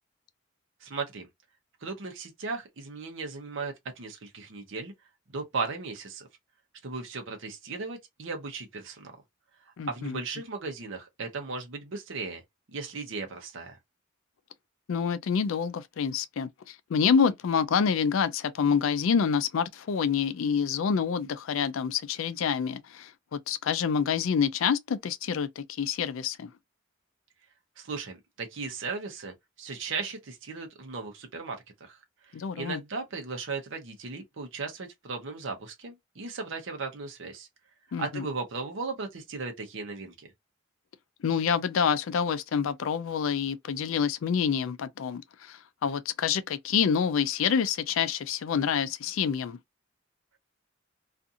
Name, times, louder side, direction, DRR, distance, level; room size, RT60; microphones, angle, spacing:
voice 1, 0.8-1.3 1.8-4.9 5.3-6.3 6.8-9.2 9.9-12.4 12.7-13.8 27.8-32.0 32.3-37.5 38.0-40.3, right 4 dB, 65° right, 0.7 m, -36 dB
voice 2, 9.8-10.2 14.9-26.5 32.3-32.8 37.9-38.2 41.2-49.6, left 6 dB, 75° left, 0.4 m, -27 dB
2.7 x 2.5 x 2.4 m
head